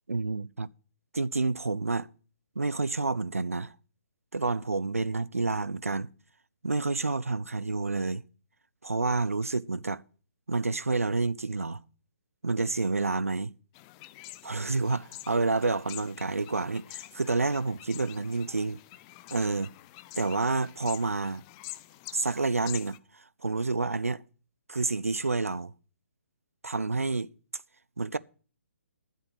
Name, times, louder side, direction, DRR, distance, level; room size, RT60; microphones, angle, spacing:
voice 1, 0.1-0.7 1.1-2.1 2.6-3.7 4.3-6.1 6.6-8.2 8.8-10.0 10.5-11.8 12.4-13.5 14.4-18.8 19.3-19.7 20.2-21.4 22.1-24.2 24.7-25.7 26.6-27.3 28.0-28.2, right 3 dB, 90° right, 0.5 m, -29 dB
sound 1, 13.7-23.0, left 18 dB, 25° left, 0.5 m, -47 dB
11.0 x 7.7 x 6.1 m
figure-of-eight pair, 140°, 8 cm